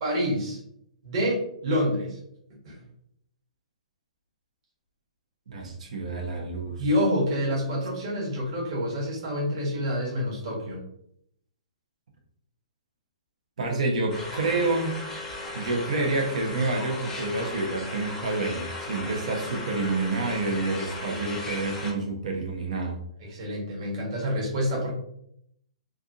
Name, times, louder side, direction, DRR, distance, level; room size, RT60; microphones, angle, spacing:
voice 1, 0.0-0.6 1.0-2.2 2.6-2.8 6.8-10.8 23.2-24.9, equal, 45° right, -4 dB, 1.4 m, -27 dB
voice 2, 5.5-6.8 13.6-15.0 15.5-23.0, right 3 dB, 70° right, 1 dB, 1.0 m, -28 dB
sound 1, 14.1-21.9, left 2 dB, 10° left, 0.7 m, -36 dB
3.4 x 2.5 x 2.6 m, 0.73 s
hypercardioid pair, 145°, 4 cm